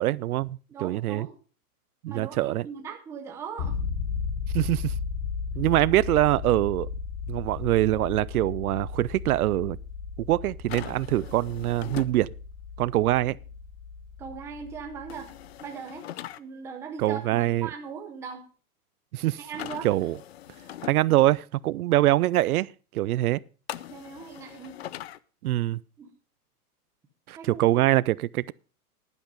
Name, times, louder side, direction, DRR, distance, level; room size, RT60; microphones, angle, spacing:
voice 1, 0.0-1.3 2.0-2.7 4.5-4.9 5.6-6.9 7.3-9.8 10.3-12.3 12.8-13.4 17.0-17.7 19.1-19.4 19.8-20.2 20.8-23.4 25.4-25.8 27.3-28.5, right 15 dB, 70° right, 0.5 m, -24 dB
voice 2, 0.7-1.4 2.1-3.8 14.2-15.3 15.6-16.1 16.4-18.4 19.4-19.9 23.9-24.7 26.0-26.1 27.4-27.7, right 6 dB, 5° right, 0.6 m, -39 dB
sound 1, 3.6-15.5, left 6 dB, 30° left, 1.0 m, -35 dB
sound 2, 10.7-12.1 15.1-16.4 19.5-20.9 23.7-25.2, left 13 dB, 45° left, 0.5 m, -41 dB
11.0 x 10.5 x 5.1 m
supercardioid pair, 165°, 45 cm